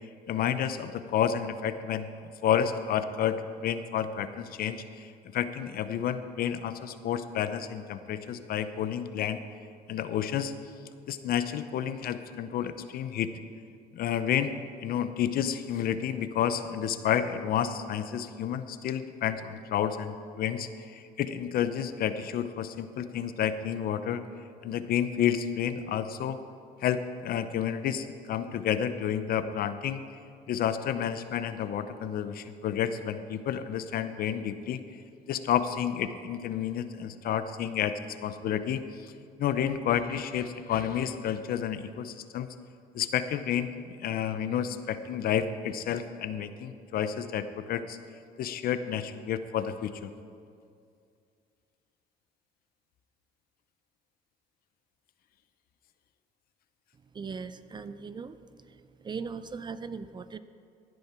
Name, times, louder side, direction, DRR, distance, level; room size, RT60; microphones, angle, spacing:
voice 1, 0.3-2.1 2.4-5.1 5.3-9.4 9.9-10.5 11.1-13.3 13.9-14.5 14.8-24.2 24.6-26.4 26.8-30.0 30.5-34.8 35.3-39.1 39.4-42.5 42.9-48.0 48.4-50.1, left 9 dB, 60° left, 11 dB, 0.7 m, -30 dB
voice 2, 57.1-58.4 59.0-60.4, right 5 dB, 25° right, 13 dB, 0.4 m, -38 dB
16.0 x 9.5 x 4.4 m, 2.4 s
cardioid pair, 110°, 17 cm